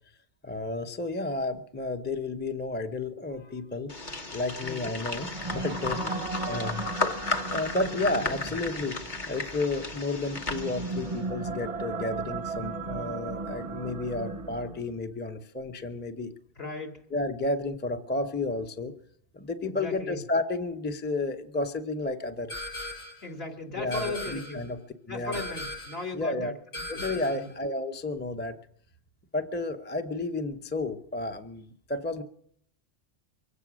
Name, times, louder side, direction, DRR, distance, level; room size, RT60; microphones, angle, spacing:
voice 1, 0.4-4.0 4.3-6.2 6.5-7.1 7.5-9.0 9.3-16.3 17.1-18.9 19.3-22.6 23.8-24.8 25.1-25.4 26.1-26.6 26.9-28.6 29.3-32.2, left 2 dB, 10° left, 7 dB, 0.7 m, -32 dB
sound 1, 3.9-11.2, left 3 dB, 40° left, 1.4 m, -34 dB
voice 2, 4.6-4.9 6.0-6.3 16.5-17.1 19.6-20.2 23.2-24.6 25.1-27.5, left 2 dB, 55° left, 1 dB, 3.3 m, -38 dB
sound 2, 5.1-15.0, right 3 dB, 35° right, 0.6 m, -36 dB
sound 3, 22.5-23.2 23.9-24.6 25.3-26.0 26.7-27.5, left 1 dB, 90° left, 7.5 m, -38 dB
23.5 x 8.5 x 6.2 m, 0.66 s
omnidirectional pair, 1.2 m